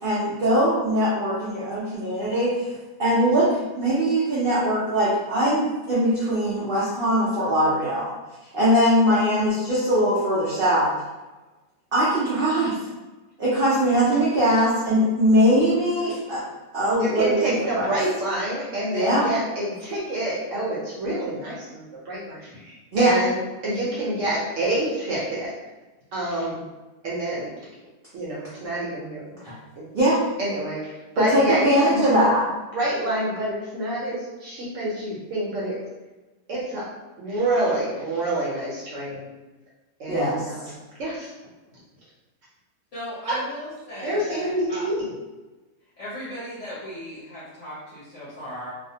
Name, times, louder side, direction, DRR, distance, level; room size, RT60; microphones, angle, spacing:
voice 1, 0.0-2.7 3.0-8.1 8.5-10.9 11.9-12.7 13.4-16.4 16.7-17.3 17.8-17.9 18.9-19.3 22.9-23.2 29.4-29.5 29.9-30.2 31.2-32.4 40.1-40.4, equal, 85° right, -8 dB, 0.4 m, -21 dB
voice 2, 17.0-23.4 23.6-25.5 26.1-26.6 27.0-27.5 28.1-29.4 29.8-29.9 30.4-32.3 32.7-35.8 36.5-36.9 37.2-39.3 40.0-41.3 41.7-41.8 43.3-43.4 44.0-45.1, right 1 dB, 65° right, -6 dB, 0.8 m, -27 dB
voice 3, 42.9-44.9 46.0-48.7, equal, 55° left, -10 dB, 0.9 m, -37 dB
2.6 x 2.0 x 2.7 m, 1.2 s
omnidirectional pair, 1.7 m